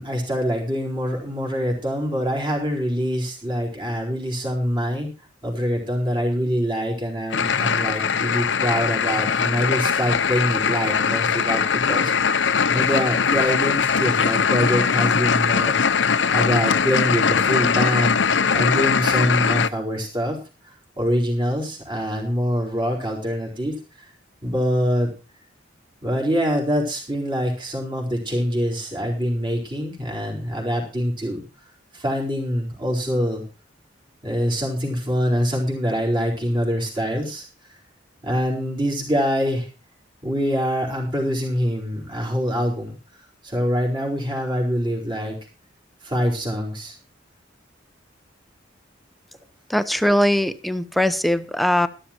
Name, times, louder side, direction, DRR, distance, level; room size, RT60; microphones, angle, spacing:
voice 1, 0.0-5.1 5.4-16.0 16.3-20.4 20.6-24.1 24.4-25.1 26.0-31.4 31.9-33.4 34.2-37.5 38.2-39.7 40.2-43.0 43.4-45.4 46.0-47.0, equal, 25° right, -1 dB, 4.5 m, -25 dB
sound 1, 7.3-19.7, left 6 dB, 75° left, 0.8 m, -21 dB
sound 2, 14.1-14.8 15.0-16.1, right 3 dB, 80° right, 7.3 m, -48 dB
voice 2, 49.7-51.9, left 1 dB, ahead, 11 dB, 0.8 m, -20 dB
13.5 x 12.5 x 4.4 m, 0.32 s
head